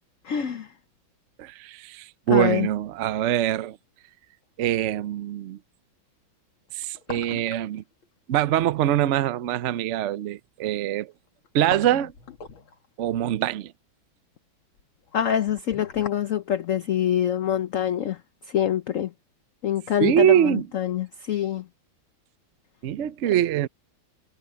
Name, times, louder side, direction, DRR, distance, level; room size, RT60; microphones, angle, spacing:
voice 1, 0.2-0.7 2.3-2.7 15.1-18.2 18.5-19.1 19.6-21.6, left 10 dB, 55° left, 0.9 m, -25 dB
voice 2, 1.4-3.8 4.6-5.6 6.7-7.8 8.3-11.1 11.5-12.1 13.0-13.7 20.0-20.7 22.8-23.7, right 12 dB, 75° right, 0.6 m, -23 dB
sound 1, 3.5-3.6 6.7-7.8 8.0-8.1 11.3-13.0 14.8-16.3 16.6-16.7, left 7 dB, 80° left, 2.8 m, -40 dB
omnidirectional pair, 2.2 m